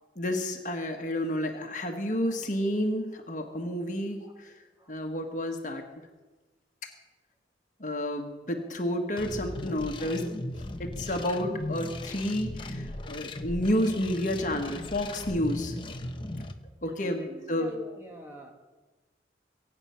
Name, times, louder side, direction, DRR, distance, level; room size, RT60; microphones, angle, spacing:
voice 1, 0.2-4.6 4.9-5.8 7.8-10.3 10.8-15.8 16.8-17.7, left 1 dB, 45° left, 3 dB, 1.5 m, -30 dB
sound 1, 9.2-16.5, left 1 dB, 30° left, 1.0 m, -37 dB
voice 2, 16.9-18.5, left 1 dB, 15° right, 1 dB, 2.3 m, -45 dB
23.0 x 9.1 x 5.7 m, 1.2 s
head